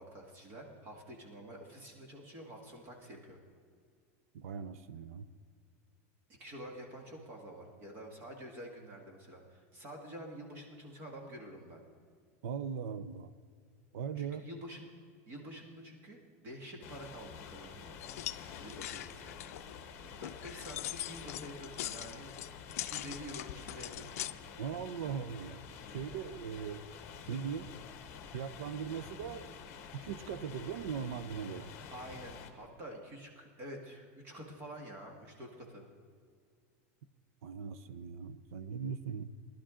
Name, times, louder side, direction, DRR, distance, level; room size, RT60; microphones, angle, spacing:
voice 1, 0.0-3.4 6.4-11.8 14.2-14.9 15.3-18.0 18.6-19.4 20.0-22.3 22.8-24.2 31.9-35.9, equal, 30° right, 1 dB, 1.8 m, -48 dB
voice 2, 4.3-5.3 12.4-13.3 13.9-14.5 24.6-25.6 25.9-26.9 27.3-27.7 28.3-29.7 29.9-31.7 37.4-39.2, right 7 dB, 75° right, 12 dB, 0.6 m, -39 dB
sound 1, 16.8-32.5, left 6 dB, 35° left, 1.2 m, -49 dB
sound 2, 18.0-24.3, left 14 dB, 80° left, 0.5 m, -42 dB
19.5 x 11.5 x 3.7 m, 2.1 s
supercardioid pair, 175°, 8 cm